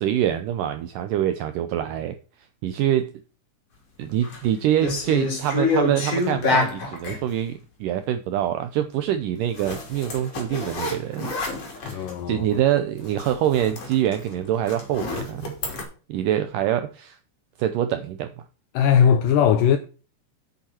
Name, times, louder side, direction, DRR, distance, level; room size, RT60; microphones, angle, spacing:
voice 1, 0.0-2.2 2.6-3.1 4.0-11.3 11.8-15.6 16.1-17.2 17.6-18.4, right 11 dB, 80° right, 1.9 m, -25 dB
sound 1, 4.0-4.4 4.8-7.2 9.6-12.2 12.6-12.7 13.0-15.8, left 2 dB, 40° left, 3.7 m, -27 dB
voice 2, 11.8-12.5 18.7-19.8, left 8 dB, 80° left, 1.9 m, -19 dB
8.9 x 8.5 x 4.3 m
omnidirectional pair, 4.6 m